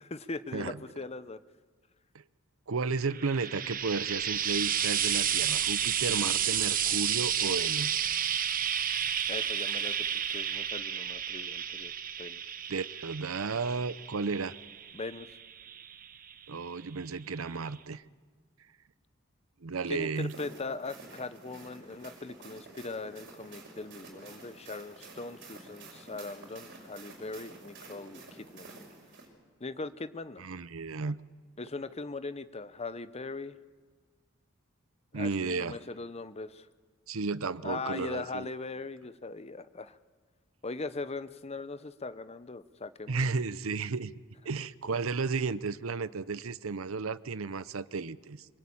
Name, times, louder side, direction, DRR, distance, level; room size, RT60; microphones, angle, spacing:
voice 1, 0.0-1.4 9.3-11.9 12.2-12.4 14.9-15.3 19.9-28.7 29.6-30.4 31.6-33.6 35.1-36.7 37.6-40.0 40.6-43.3, left 3 dB, 30° left, 13 dB, 0.8 m, -40 dB
voice 2, 2.7-8.1 12.7-14.5 16.5-18.0 19.6-20.3 30.4-31.2 35.1-35.8 37.1-38.5 43.1-44.1 44.4-48.4, right 4 dB, 75° right, 16 dB, 0.8 m, -33 dB
Frying (food), 3.0-16.4 17.4-17.5, right 9 dB, 40° right, 1.0 m, -31 dB
sound 1, 20.2-29.3, right 3 dB, 60° right, 5.8 m, -50 dB
25.0 x 22.5 x 8.7 m, 1.5 s
head